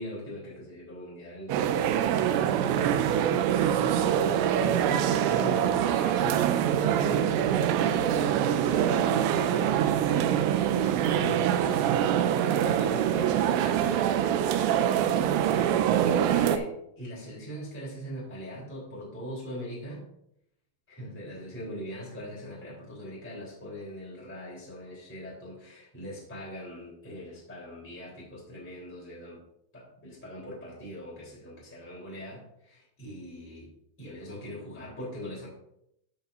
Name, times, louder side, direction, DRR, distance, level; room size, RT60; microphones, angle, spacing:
voice 1, 0.0-2.7 3.8-8.1 8.4-10.3 10.7-14.6 15.4-20.0 20.9-29.4 29.7-33.7 34.0-35.5, equal, 5° left, -6 dB, 3.2 m, -41 dB
sound 1, 1.5-16.6, right 10 dB, 85° right, 2.9 m, -24 dB
12.5 x 8.0 x 2.7 m, 0.77 s
omnidirectional pair, 5.3 m